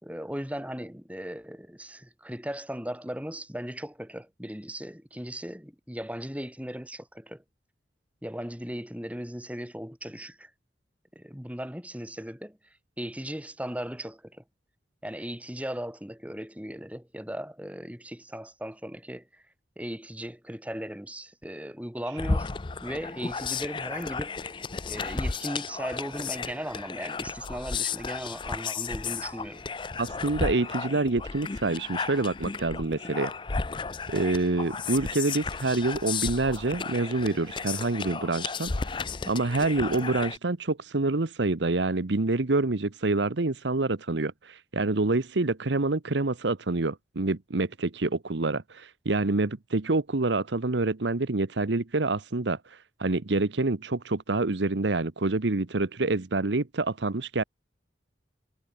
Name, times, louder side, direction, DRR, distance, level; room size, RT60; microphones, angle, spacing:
voice 1, 0.0-7.4 8.2-10.5 11.2-12.6 13.0-14.4 15.0-19.4 19.8-22.5 22.8-29.7, equal, 5° right, 3.9 m, -37 dB
sound 1, 22.2-40.4, left 4 dB, 25° left, 0.5 m, -34 dB
voice 2, 30.0-33.3 34.1-38.7 39.3-52.6 53.0-57.4, right 2 dB, 75° right, 1.0 m, -27 dB
head